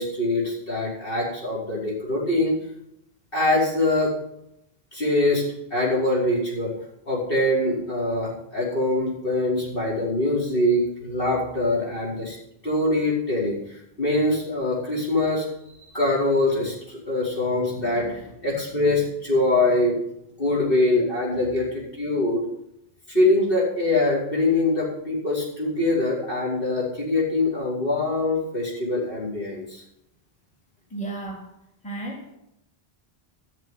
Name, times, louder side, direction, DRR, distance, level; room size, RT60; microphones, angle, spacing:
voice 1, 0.0-2.6 3.3-4.1 4.9-5.4 5.7-6.7 7.0-12.4 12.6-15.5 15.9-20.0 20.4-22.4 23.1-29.8, left 2 dB, 60° left, -6 dB, 5.2 m, -23 dB
voice 2, 30.9-31.5 31.8-32.3, right 2 dB, 5° left, -1 dB, 2.0 m, -33 dB
14.0 x 6.9 x 8.0 m, 0.82 s
omnidirectional pair, 1.0 m